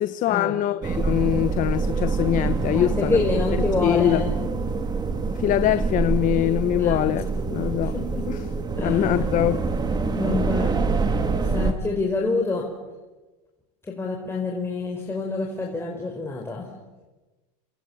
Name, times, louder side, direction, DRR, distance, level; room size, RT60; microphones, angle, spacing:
voice 1, 0.0-3.2 3.8-4.2 5.4-7.2 7.5-7.9 8.3-8.4 8.8-9.6, left 13 dB, 40° left, 1.0 m, -23 dB
sound 1, 0.8-11.7, right 4 dB, 20° right, 2.9 m, -25 dB
voice 2, 2.7-4.3 6.7-7.0 7.9-8.2 8.8-9.0 10.1-10.7 11.5-12.6 13.8-16.7, left 3 dB, 10° left, 4.7 m, -27 dB
29.5 x 27.0 x 7.2 m
supercardioid pair, 110°, 20 cm